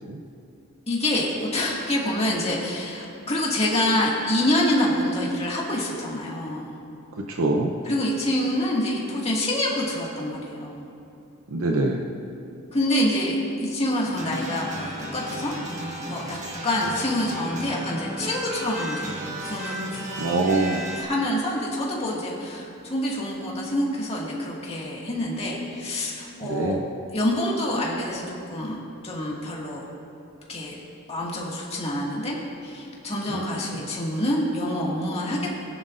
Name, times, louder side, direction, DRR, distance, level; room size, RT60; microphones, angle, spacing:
voice 1, 0.9-6.7 7.8-10.9 12.7-15.5 15.8-16.4 16.6-19.1 19.4-20.4 21.0-26.8 27.1-29.8 30.5-30.8 31.1-32.4 32.6-35.6, left 1 dB, 25° left, -4 dB, 1.9 m, -26 dB
voice 2, 7.2-7.7 11.5-12.0 20.2-20.8 26.4-26.8 33.3-33.4, right 2 dB, 65° right, 2 dB, 0.7 m, -24 dB
sound 1, 14.1-21.0, right 1 dB, 35° right, 1.3 m, -34 dB
19.5 x 10.0 x 2.5 m, 2.7 s
head